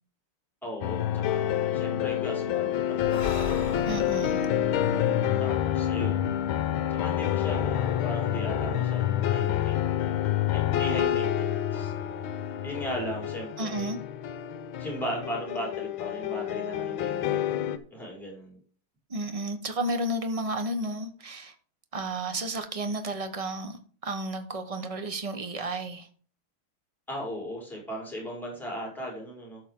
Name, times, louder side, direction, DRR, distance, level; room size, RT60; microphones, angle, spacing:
voice 1, 0.6-3.5 5.4-6.4 6.9-9.8 10.5-11.9 12.6-13.9 14.8-17.6 17.9-18.6 27.1-29.6, equal, ahead, 4.7 m, -37 dB
sound 1, 0.8-17.8, left 11 dB, 75° left, 1.6 m, -28 dB
Breathing, 3.0-6.5, left 3 dB, 35° left, 0.6 m, -40 dB
voice 2, 3.8-4.5 13.6-14.0 19.1-21.5 21.9-26.1, right 1 dB, 40° right, 0.5 m, -32 dB
13.0 x 6.4 x 3.7 m
omnidirectional pair, 2.4 m